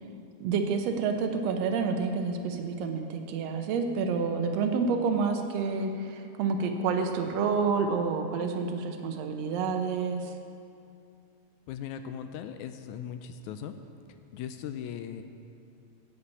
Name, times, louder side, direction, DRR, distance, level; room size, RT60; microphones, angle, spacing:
voice 1, 0.4-10.3, right 5 dB, 70° right, 5 dB, 1.8 m, -29 dB
voice 2, 11.7-13.8 14.3-15.2, left 8 dB, 85° left, 9 dB, 2.0 m, -38 dB
8.4 x 8.2 x 8.5 m, 2.5 s
omnidirectional pair, 3.4 m